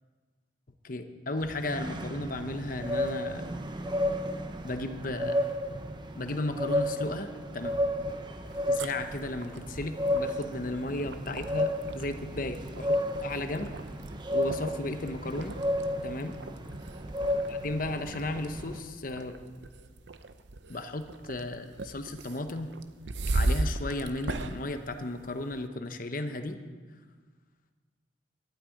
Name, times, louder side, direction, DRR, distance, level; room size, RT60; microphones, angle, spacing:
voice 1, 0.8-3.5 4.6-5.4 6.1-7.7 8.7-13.7 14.3-15.6 16.0-16.4 17.5-19.3 20.7-22.7 23.3-26.6, left 2 dB, 45° left, 7 dB, 0.8 m, -35 dB
sound 1, 1.4-18.8, left 1 dB, 25° right, 0.7 m, -33 dB
sound 2, 8.4-25.7, right 2 dB, 65° right, 0.7 m, -38 dB
12.0 x 8.9 x 9.0 m, 1.5 s
head